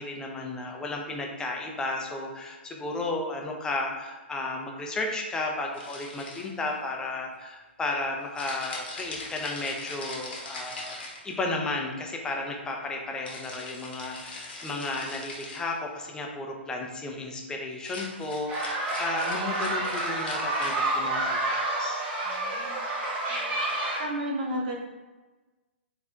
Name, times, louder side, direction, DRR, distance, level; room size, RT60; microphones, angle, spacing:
voice 1, 0.0-11.0 11.2-22.0, left 2 dB, 10° left, 1 dB, 0.6 m, -33 dB
sound 1, 5.7-6.7 8.4-11.6 13.3-15.7 17.7-20.8, left 2 dB, 60° left, 1.1 m, -41 dB
sound 2, 18.5-24.0, right 2 dB, 25° right, 0.9 m, -29 dB
voice 2, 22.2-22.8 23.2-23.6 24.0-24.7, equal, 45° right, -3 dB, 1.2 m, -33 dB
4.2 x 3.3 x 2.4 m, 1.2 s
figure-of-eight pair, 120°, 6 cm